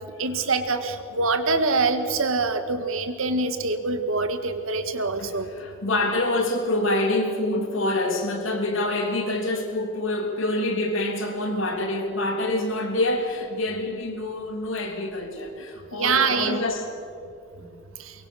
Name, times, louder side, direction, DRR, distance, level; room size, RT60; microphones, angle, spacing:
voice 1, 0.0-5.5 15.9-16.6, right 3 dB, 80° right, 1.9 m, -25 dB
voice 2, 5.2-17.0 17.6-17.8, left 1 dB, 70° left, 3.2 m, -26 dB
23.5 x 22.5 x 6.4 m
head